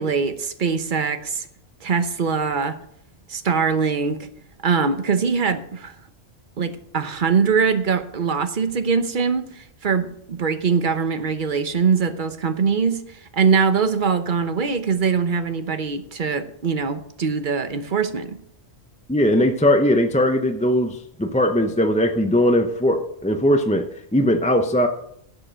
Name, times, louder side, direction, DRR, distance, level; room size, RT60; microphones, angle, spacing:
voice 1, 0.0-1.5 1.8-2.8 3.3-4.3 4.6-6.0 6.6-18.4, right 5 dB, 45° right, 10 dB, 1.0 m, -22 dB
voice 2, 19.1-23.9 24.1-24.9, left 1 dB, 10° left, 5 dB, 0.5 m, -19 dB
11.5 x 7.7 x 6.3 m, 0.72 s
omnidirectional pair, 1.2 m